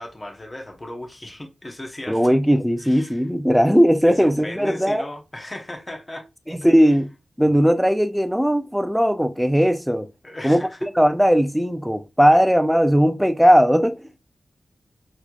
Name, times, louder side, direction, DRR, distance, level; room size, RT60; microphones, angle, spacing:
voice 1, 0.0-2.3 2.8-3.2 4.1-6.3 10.2-10.9, left 1 dB, 25° left, 0.8 m, -36 dB
voice 2, 2.1-5.0 6.5-7.1 7.4-10.1 10.4-14.0, equal, ahead, 0.4 m, -18 dB
4.2 x 2.9 x 2.2 m
wide cardioid pair, 125°, 0 cm